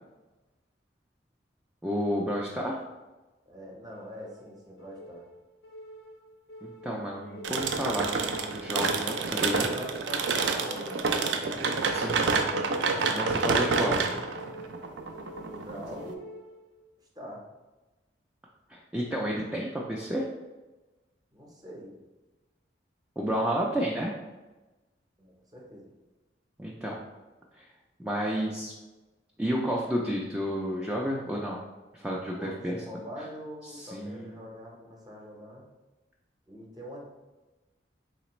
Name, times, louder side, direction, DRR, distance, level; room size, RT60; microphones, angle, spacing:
voice 1, 1.8-2.8 6.6-9.7 11.9-12.5 13.0-14.0 18.7-20.3 23.2-24.1 26.6-27.0 27.5-27.6 28.0-28.7 29.4-31.6 31.9-32.8 33.6-34.4, equal, 5° right, -3 dB, 0.3 m, -31 dB
voice 2, 3.5-5.2 9.4-11.7 15.3-16.3 17.1-17.4 21.3-22.0 25.2-25.9 32.2-35.6 36.5-37.1, equal, 20° right, -2 dB, 0.8 m, -43 dB
sound 1, 3.9-16.9, equal, 65° left, 0.5 m, -48 dB
sound 2, 7.4-16.1, right 4 dB, 85° right, 0.4 m, -28 dB
4.0 x 3.2 x 3.0 m, 1.1 s
head